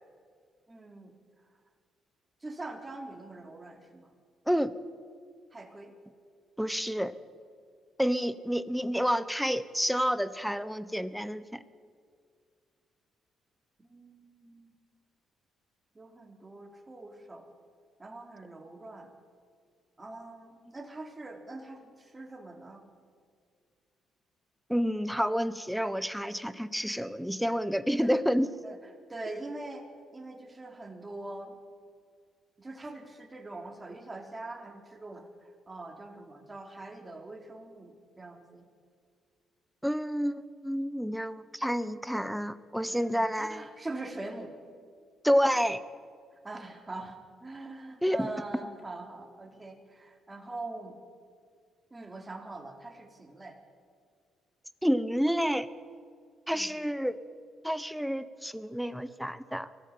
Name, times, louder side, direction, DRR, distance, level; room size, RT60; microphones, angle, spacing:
voice 1, 0.7-1.1 2.4-4.1 5.5-5.9 13.8-14.8 15.9-17.5 18.0-19.1 20.0-22.8 28.0-28.2 28.6-28.8 29.1-29.9 30.1-31.6 32.6-38.7 42.9-44.5 46.3-51.0 51.9-53.6 56.5-56.7, right 2 dB, 20° right, 3 dB, 3.9 m, -43 dB
voice 2, 6.6-7.1 8.0-11.6 24.7-28.5 39.8-43.7 45.2-45.8 48.0-48.3 54.8-55.7 56.5-57.2 57.6-59.8, equal, ahead, 14 dB, 1.1 m, -29 dB
23.5 x 17.5 x 8.9 m, 2.1 s
cardioid pair, 90°, 0 cm